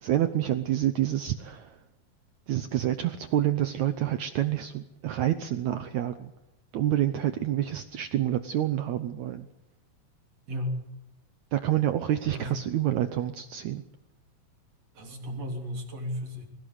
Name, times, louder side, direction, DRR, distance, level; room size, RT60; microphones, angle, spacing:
voice 1, 0.0-1.8 2.5-6.3 6.7-9.5 11.5-13.8, right 12 dB, 75° right, 10 dB, 1.7 m, -28 dB
voice 2, 12.3-12.6 15.0-16.4, left 1 dB, 45° right, 2 dB, 4.2 m, -34 dB
21.5 x 17.5 x 8.1 m, 0.94 s
omnidirectional pair, 4.3 m